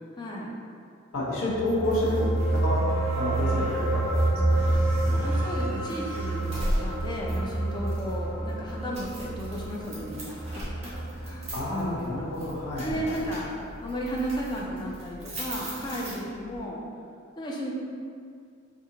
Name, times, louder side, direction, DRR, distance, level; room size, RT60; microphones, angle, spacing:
voice 1, 0.2-0.5 5.2-12.3 12.8-13.5 13.8-16.8 17.4-17.7, equal, 20° left, -3 dB, 0.3 m, -34 dB
voice 2, 1.1-2.8 3.1-4.7 5.0-5.3 11.5-13.2, left 1 dB, 90° left, -6 dB, 0.7 m, -30 dB
sound 1, 1.4-12.1 12.4-12.6, right 2 dB, 10° right, 1.0 m, -28 dB
sound 2, 1.7-16.6, equal, 35° right, 0.8 m, -39 dB
2.5 x 2.4 x 2.7 m, 2.3 s
head